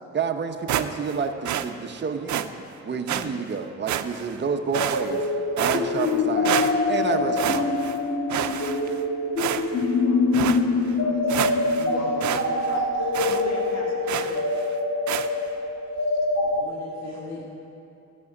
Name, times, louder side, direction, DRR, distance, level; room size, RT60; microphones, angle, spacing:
voice 1, 0.1-2.5 2.8-5.2 5.6-6.6 6.9-7.7, right 5 dB, 35° right, 5 dB, 1.0 m, -29 dB
sound 1, 0.7-1.2 1.4-1.7 2.3-2.5 3.1-3.2 3.9-4.3 4.7-5.3 5.6-6.2 6.4-7.0 7.4-8.0 8.3-9.0 9.4-9.9 10.3-10.6 11.0-11.1 11.3-11.9 12.2-12.4 12.7-12.8 13.1-13.4 14.1-14.4 15.1-15.3, right 11 dB, 70° right, 0.7 m, -28 dB
sound 2, 4.7-16.6, left 3 dB, 40° left, 1.9 m, -24 dB
voice 2, 9.9-14.6 16.1-16.2, left 2 dB, 60° left, -2 dB, 2.0 m, -39 dB
voice 3, 15.9-17.4, left 3 dB, 90° left, -6 dB, 2.2 m, -41 dB
14.0 x 6.2 x 9.6 m, 2.7 s
cardioid pair, 90°, 30 cm